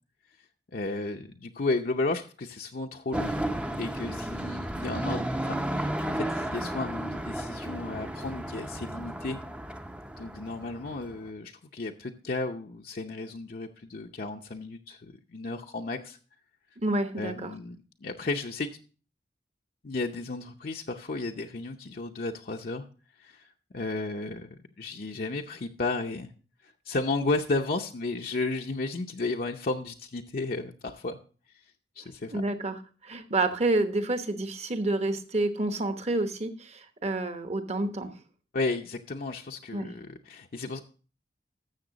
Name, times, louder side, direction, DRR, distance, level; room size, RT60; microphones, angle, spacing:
voice 1, 0.7-3.4 3.8-9.4 10.2-16.2 17.1-18.7 19.8-22.8 23.2-23.5 23.7-24.5 24.8-26.3 26.6-31.2 32.0-32.4 38.5-40.8, left 3 dB, 55° left, 2 dB, 0.6 m, -33 dB
sound 1, 3.1-11.2, right 1 dB, 5° right, 0.6 m, -33 dB
voice 2, 16.8-17.5 32.3-38.1 39.7-39.9, right 2 dB, 40° right, 8 dB, 1.1 m, -29 dB
13.0 x 6.9 x 3.9 m, 0.38 s
head